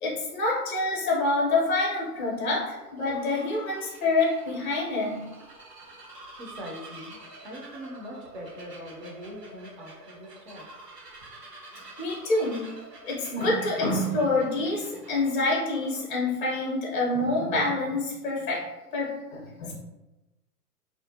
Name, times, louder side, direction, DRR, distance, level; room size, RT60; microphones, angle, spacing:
voice 1, 0.0-5.2 11.7-12.7 13.1-18.6 18.9-19.7, left 2 dB, 35° left, -3 dB, 0.6 m, -27 dB
Bird vocalization bird call bird song, 1.4-16.3, right 2 dB, 90° right, 0.9 m, -48 dB
voice 2, 6.4-10.7, equal, 35° right, -1 dB, 0.5 m, -42 dB
2.5 x 2.0 x 2.6 m, 1.1 s
figure-of-eight pair, 120°, 47 cm